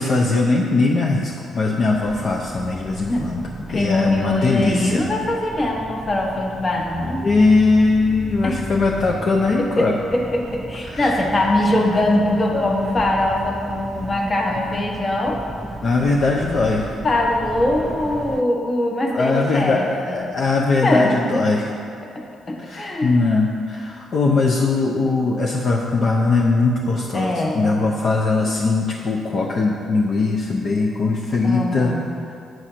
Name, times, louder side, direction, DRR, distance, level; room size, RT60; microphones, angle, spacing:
voice 1, 0.0-3.4 3.7-5.1 7.2-10.0 10.8-11.1 12.5-12.6 15.8-16.9 19.1-21.7 22.6-31.9, left 3 dB, 55° left, -1 dB, 0.6 m, -20 dB
sound 1, 1.9-18.4, right 2 dB, 20° right, 0.3 m, -35 dB
voice 2, 3.1-7.2 8.4-8.6 9.6-15.4 17.0-20.2 20.8-21.4 22.1-23.2 27.1-27.6 31.4-32.0, left 1 dB, 30° left, 0 dB, 1.2 m, -22 dB
7.8 x 4.2 x 6.1 m, 2.5 s
cardioid pair, 90°, 0 cm